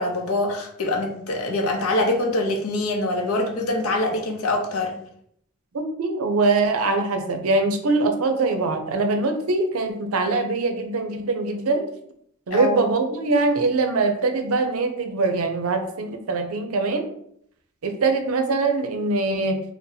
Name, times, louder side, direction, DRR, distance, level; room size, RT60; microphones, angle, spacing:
voice 1, 0.0-5.0 12.5-12.8, left 2 dB, 90° left, 3 dB, 0.6 m, -24 dB
voice 2, 5.7-11.9 12.5-17.1 17.8-19.6, right 3 dB, 85° right, 6 dB, 0.5 m, -23 dB
2.7 x 2.1 x 3.8 m, 0.69 s
head